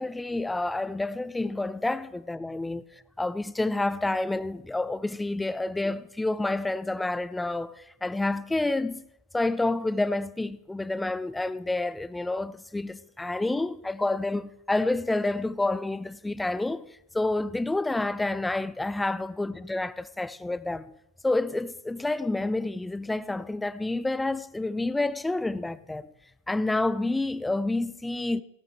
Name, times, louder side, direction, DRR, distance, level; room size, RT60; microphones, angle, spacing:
voice 1, 0.0-2.8 3.2-9.0 9.3-21.0 21.2-26.1 26.5-28.4, left 2 dB, 5° left, 0.4 m, -29 dB
17.5 x 8.3 x 4.8 m
figure-of-eight pair, 90°, 0 cm